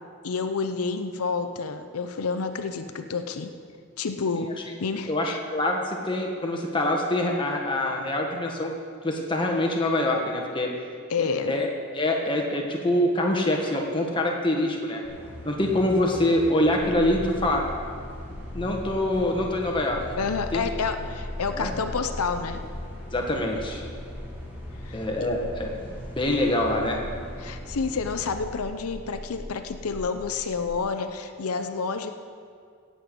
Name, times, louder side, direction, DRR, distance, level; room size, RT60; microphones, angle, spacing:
voice 1, 0.2-3.5 4.0-5.4 11.1-11.5 20.2-22.6 24.9-25.0 27.4-32.1, left 4 dB, 90° left, 8 dB, 0.7 m, -29 dB
voice 2, 5.1-8.7 9.0-10.7 11.2-11.7 11.9-15.0 15.4-17.7 18.5-20.0 20.5-20.6 21.5-21.7 23.1-23.8 24.9-27.0, left 1 dB, 20° left, 1 dB, 1.3 m, -25 dB
sound 1, 15.0-28.3, left 1 dB, 10° right, 2.8 m, -41 dB
sound 2, 16.8-30.8, left 1 dB, 45° left, 1.0 m, -40 dB
17.0 x 7.9 x 5.1 m, 2.2 s
head